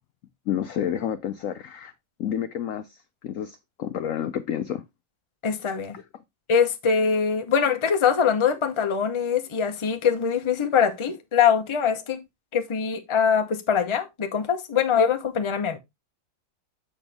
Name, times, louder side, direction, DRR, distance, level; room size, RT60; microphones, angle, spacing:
voice 1, 0.5-1.9 2.2-4.8 5.9-6.0, left 10 dB, 75° left, 0.7 m, -30 dB
voice 2, 5.4-6.0 6.5-12.2 12.5-15.8, left 7 dB, 30° left, 0.5 m, -23 dB
7.2 x 6.0 x 3.4 m
omnidirectional pair, 2.0 m